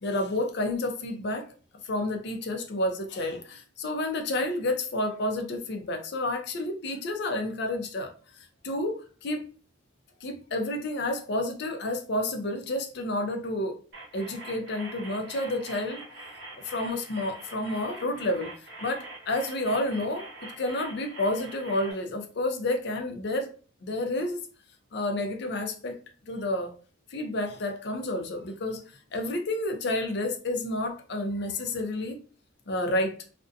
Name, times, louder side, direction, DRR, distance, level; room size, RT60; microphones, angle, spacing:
voice 1, 0.0-1.5 1.8-8.1 8.6-9.5 10.2-13.8 14.1-16.0 16.6-18.5 18.8-23.5 23.8-24.4 24.9-26.0 26.3-26.7 27.1-28.8 29.1-32.2 32.7-33.2, left 1 dB, 55° left, 0.5 m, -30 dB
sound 1, 13.9-21.9, right 2 dB, 60° right, 1.0 m, -44 dB
2.5 x 2.1 x 2.5 m
head